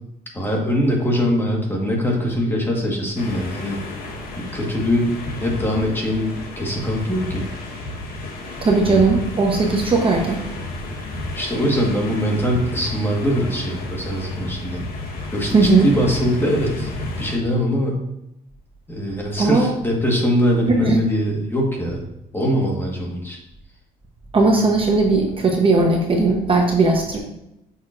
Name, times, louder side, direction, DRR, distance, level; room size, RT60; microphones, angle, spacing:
voice 1, 0.3-3.8 4.4-7.4 8.8-9.0 11.3-14.8 15.3-16.9 17.2-18.0 18.9-22.0 22.3-23.4, equal, 15° left, -1 dB, 1.4 m, -22 dB
sound 1, 3.2-17.4, left 2 dB, 60° left, 1.3 m, -32 dB
voice 2, 8.6-10.4 15.5-15.9 19.4-19.7 20.7-21.0 24.3-27.2, right 3 dB, 30° right, 1 dB, 0.9 m, -17 dB
6.6 x 5.8 x 2.5 m, 0.85 s
cardioid pair, 110°, 17 cm